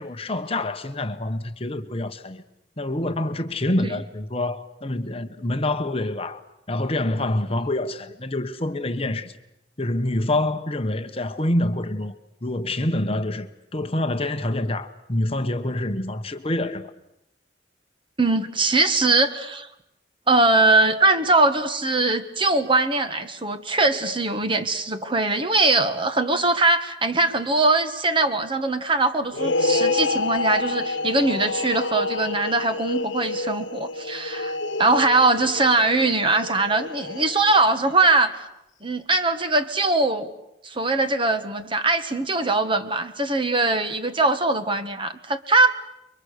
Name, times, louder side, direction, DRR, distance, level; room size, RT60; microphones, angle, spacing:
voice 1, 0.0-2.4 2.8-6.4 6.7-9.3 9.8-12.1 12.4-16.9, left 1 dB, 30° left, 1.1 m, -26 dB
voice 2, 18.2-19.7 20.3-38.3 38.8-40.3 40.6-45.7, right 2 dB, 25° right, 1.5 m, -21 dB
sound 1, 29.3-37.9, left 3 dB, 80° left, 1.1 m, -28 dB
29.5 x 23.5 x 6.6 m
head